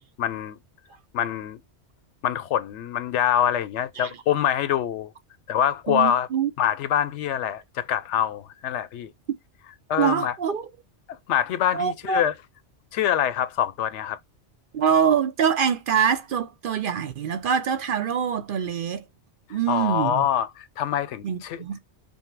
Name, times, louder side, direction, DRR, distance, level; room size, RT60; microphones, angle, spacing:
voice 1, 0.2-0.6 1.1-1.6 2.2-5.1 5.5-6.3 6.6-9.1 9.9-10.4 11.1-12.3 12.9-14.2 19.7-21.6, left 10 dB, 85° left, 0.9 m, -25 dB
voice 2, 5.9-6.5 10.0-10.7 11.7-12.2 14.7-19.0 19.5-20.2 21.2-21.8, right 7 dB, 60° right, 0.6 m, -24 dB
5.4 x 2.1 x 4.5 m
omnidirectional pair, 1.2 m